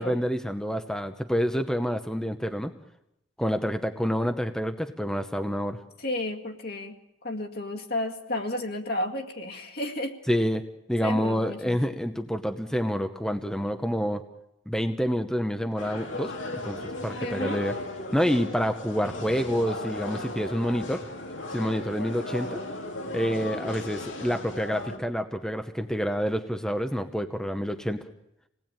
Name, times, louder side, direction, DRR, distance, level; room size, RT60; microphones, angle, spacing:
voice 1, 0.0-2.7 3.4-5.8 10.3-10.6 10.9-14.2 14.7-16.3 16.6-17.7 18.1-21.0 21.5-22.6 23.1-28.0, equal, 5° left, 7 dB, 0.9 m, -28 dB
voice 2, 6.0-7.0 7.2-10.2 11.0-11.8 17.2-17.6, left 1 dB, 55° left, 2 dB, 2.2 m, -32 dB
sound 1, 15.8-25.0, left 1 dB, 85° left, 3.1 m, -36 dB
26.5 x 18.5 x 9.0 m, 0.83 s
head